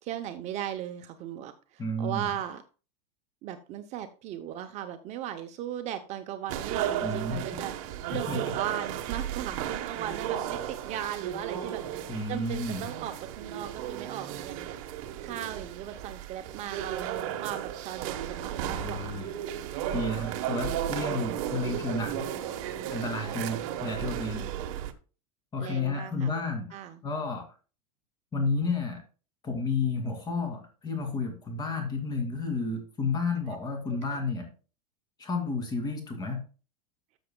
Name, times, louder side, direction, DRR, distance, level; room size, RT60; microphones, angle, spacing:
voice 1, 0.0-2.6 3.4-14.7 15.2-19.2 23.1-23.9 25.6-26.4 26.7-27.0 33.5-33.6 33.9-34.2, right 11 dB, 35° right, 8 dB, 0.6 m, -38 dB
voice 2, 1.8-2.3 7.0-7.6 8.3-8.4 12.1-12.9 18.7-19.3 19.9-22.3 22.9-24.5 25.5-26.8 27.0-27.4 28.3-29.0 29.4-34.5 35.2-36.4, left 3 dB, 20° left, 4 dB, 2.3 m, -31 dB
sound 1, 6.5-24.9, right 10 dB, 55° right, 1.1 m, -34 dB
13.0 x 6.8 x 2.2 m, 0.35 s
supercardioid pair, 150°, 20 cm